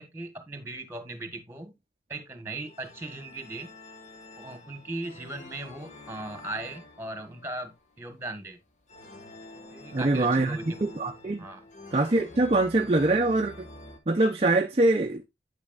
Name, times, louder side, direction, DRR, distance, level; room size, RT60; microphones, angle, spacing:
voice 1, 0.0-1.7 2.1-3.7 4.4-8.6 9.5-10.8 11.4-11.6 12.4-12.5, right 2 dB, 15° right, 1.5 m, -38 dB
sound 1, 2.7-14.0, left 2 dB, 40° left, 1.4 m, -48 dB
voice 2, 9.9-11.4 11.9-13.7 14.1-15.3, right 2 dB, 35° right, 0.5 m, -24 dB
8.5 x 8.2 x 2.4 m
head